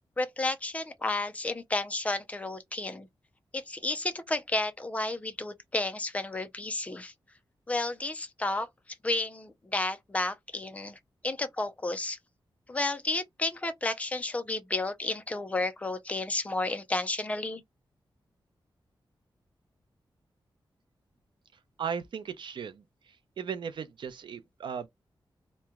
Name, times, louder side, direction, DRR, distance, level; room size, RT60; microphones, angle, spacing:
voice 1, 0.2-3.1 3.5-7.1 7.7-8.7 9.0-11.0 11.2-12.2 12.7-17.6, left 2 dB, 15° left, 0.4 m, -32 dB
voice 2, 21.5-24.9, right 7 dB, 65° right, 0.5 m, -37 dB
2.9 x 2.2 x 3.5 m
wide cardioid pair, 175°, 9 cm